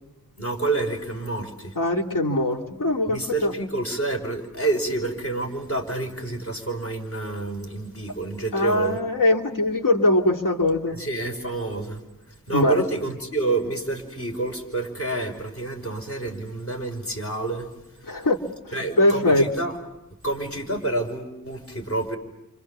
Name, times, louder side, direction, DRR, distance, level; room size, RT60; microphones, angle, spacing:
voice 1, 0.4-1.7 3.1-9.0 10.9-12.0 12.5-17.7 18.7-19.7 20.2-22.2, right 2 dB, 45° left, 2 dB, 5.4 m, -28 dB
voice 2, 1.8-3.5 8.5-11.0 12.5-12.8 18.1-18.4 18.7-19.5, left 1 dB, 75° left, 3 dB, 2.3 m, -21 dB
29.5 x 27.5 x 7.2 m, 0.90 s
wide cardioid pair, 75°, 33 cm